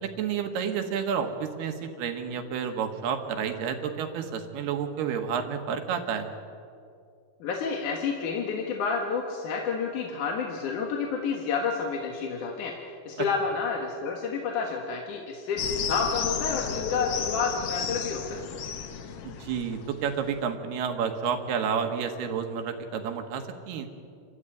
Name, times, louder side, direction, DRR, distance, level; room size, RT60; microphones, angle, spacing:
voice 1, 0.0-6.3 19.2-23.9, right 7 dB, 80° right, 5 dB, 3.5 m, -30 dB
voice 2, 7.4-12.7 13.1-18.4, left 5 dB, 60° left, 1 dB, 2.8 m, -30 dB
sound 1, 15.6-20.4, left 7 dB, 75° left, 1.3 m, -33 dB
28.5 x 14.0 x 9.2 m, 2.4 s
omnidirectional pair, 4.5 m